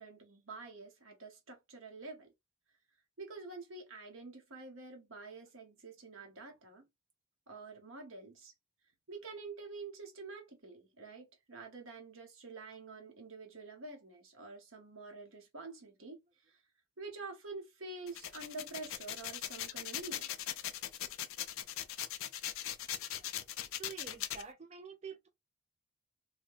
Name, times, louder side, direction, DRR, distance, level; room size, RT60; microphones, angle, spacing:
voice 1, 0.0-2.3 3.2-6.9 7.5-8.5 9.1-16.2 16.5-16.6 17.0-20.3, right 3 dB, 70° right, 1.0 m, -48 dB
sound 1, 18.1-24.4, left 11 dB, 70° left, 0.4 m, -40 dB
voice 2, 23.8-25.3, right 6 dB, 30° right, 0.4 m, -47 dB
3.2 x 2.2 x 2.5 m
head